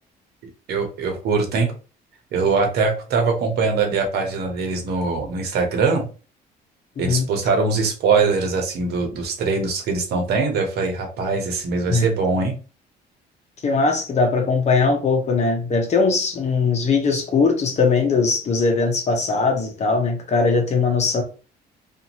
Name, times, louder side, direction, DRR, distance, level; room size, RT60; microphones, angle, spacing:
voice 1, 0.7-1.7 2.3-6.1 7.0-12.5, right 4 dB, 70° right, 1.0 m, -22 dB
voice 2, 13.6-21.2, left 4 dB, 40° left, 0.8 m, -20 dB
2.6 x 2.5 x 2.9 m
cardioid pair, 110°, 17 cm